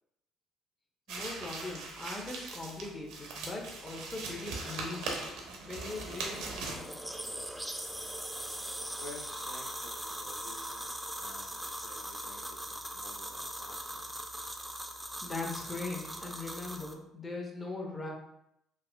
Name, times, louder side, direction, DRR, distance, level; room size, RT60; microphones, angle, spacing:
voice 1, 1.1-5.2 5.6-7.3 15.2-18.1, left 3 dB, 30° left, 0 dB, 0.8 m, -40 dB
sound 1, 1.1-6.8, right 3 dB, 75° right, 0.5 m, -40 dB
sound 2, 5.7-16.9, right 1 dB, 5° right, 0.4 m, -41 dB
voice 2, 9.0-10.9 11.2-14.1, left 2 dB, 80° left, -2 dB, 0.4 m, -52 dB
3.5 x 2.3 x 2.2 m, 0.82 s
hypercardioid pair, 65°, 0 cm